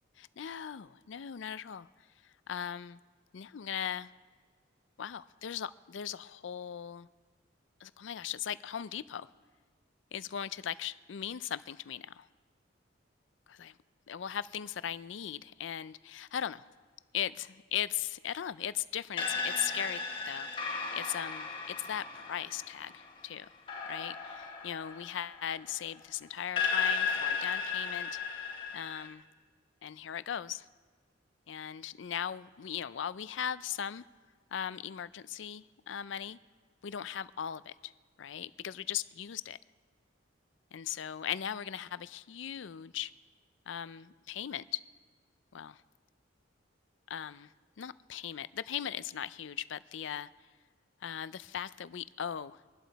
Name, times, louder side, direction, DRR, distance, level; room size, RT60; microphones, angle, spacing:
voice 1, 0.2-1.9 2.5-3.0 3.3-4.1 5.0-7.1 7.8-9.3 10.1-12.3 13.5-13.7 14.1-16.6 17.1-23.5 23.9-28.1 28.7-29.2 29.8-30.7 31.5-34.0 34.5-36.4 36.8-37.9 38.2-39.6 40.7-43.1 43.7-44.8 45.5-45.8 47.1-47.5 47.8-50.3 51.0-52.6, left 9 dB, 75° left, 16 dB, 0.4 m, -38 dB
sound 1, 19.2-26.0 26.6-29.1, left 5 dB, 30° left, 3.7 m, -35 dB
23.0 x 12.0 x 4.1 m, 1.5 s
head